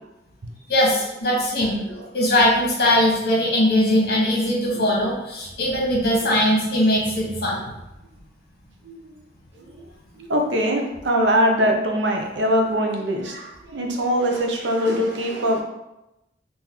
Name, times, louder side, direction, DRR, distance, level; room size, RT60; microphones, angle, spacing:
voice 1, 0.7-1.8 2.1-7.6, left 1 dB, 60° left, -3 dB, 1.1 m, -20 dB
voice 2, 10.2-15.6, equal, 80° right, 2 dB, 0.6 m, -22 dB
3.7 x 2.6 x 3.0 m, 0.94 s
head